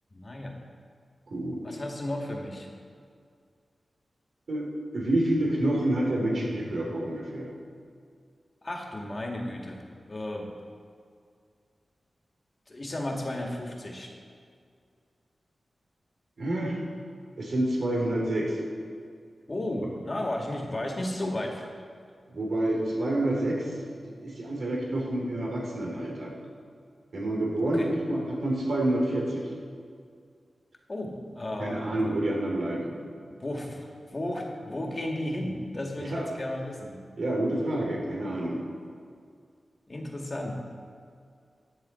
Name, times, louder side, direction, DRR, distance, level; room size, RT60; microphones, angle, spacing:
voice 1, 0.1-0.5 1.6-2.7 8.6-9.8 10.1-10.5 12.7-14.1 19.5-21.7 27.7-27.9 30.9-32.1 33.4-37.0 39.9-40.5, left 1 dB, 35° left, 0 dB, 2.0 m, -34 dB
voice 2, 1.3-1.6 4.5-4.7 4.9-7.5 16.4-16.8 17.4-18.6 22.3-23.7 24.0-26.3 27.1-29.5 31.6-32.9 36.0-36.3 37.2-38.6, right 1 dB, 75° right, -2 dB, 3.2 m, -28 dB
14.0 x 9.3 x 4.4 m, 2.2 s
wide cardioid pair, 80°, 0 cm